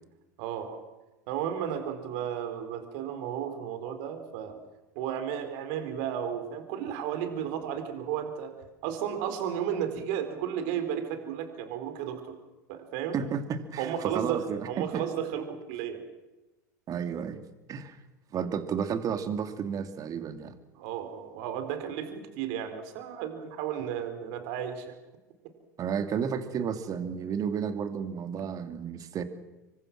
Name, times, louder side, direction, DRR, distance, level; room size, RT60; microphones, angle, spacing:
voice 1, 0.4-0.8 1.3-4.6 4.9-8.5 8.8-12.4 12.7-13.2 13.8-16.0 20.7-25.0, right 9 dB, 60° right, 8 dB, 4.3 m, -33 dB
voice 2, 13.1-14.7 14.9-15.0 16.9-17.4 17.7-18.0 18.3-20.6 25.8-29.2, right 7 dB, 40° right, 9 dB, 2.7 m, -32 dB
27.5 x 24.5 x 6.2 m, 1.1 s
hypercardioid pair, 80°, 10 cm